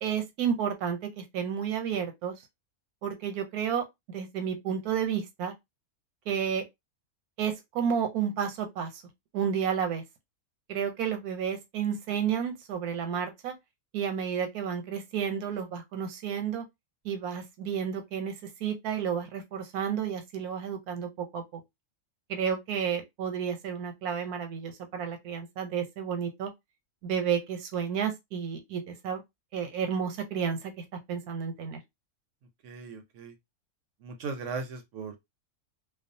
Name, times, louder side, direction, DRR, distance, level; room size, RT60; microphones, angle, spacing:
voice 1, 0.0-2.3 3.0-5.5 6.3-6.6 7.4-9.0 9.3-10.0 10.7-13.5 13.9-16.6 17.0-21.4 22.3-26.5 27.0-29.2 29.5-31.8, right 7 dB, 80° right, 1.2 m, -31 dB
voice 2, 32.6-33.3 34.0-35.2, right 4 dB, 65° right, 0.9 m, -38 dB
2.4 x 2.3 x 2.6 m
omnidirectional pair, 1.6 m